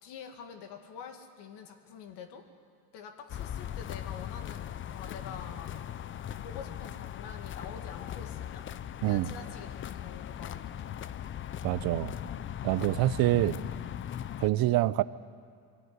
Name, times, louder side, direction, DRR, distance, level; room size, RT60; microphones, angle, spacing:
voice 1, 0.0-2.4 2.9-5.9 6.3-8.7 9.0-10.9 13.3-13.8 14.5-14.8, left 7 dB, 65° left, 5 dB, 2.2 m, -47 dB
sound 1, 3.3-14.5, left 10 dB, 30° left, 0.5 m, -39 dB
voice 2, 11.6-12.1 12.6-13.6 14.4-15.0, right 16 dB, 55° right, 17 dB, 0.7 m, -26 dB
21.5 x 15.0 x 9.6 m, 2.2 s
cardioid pair, 120°, 44 cm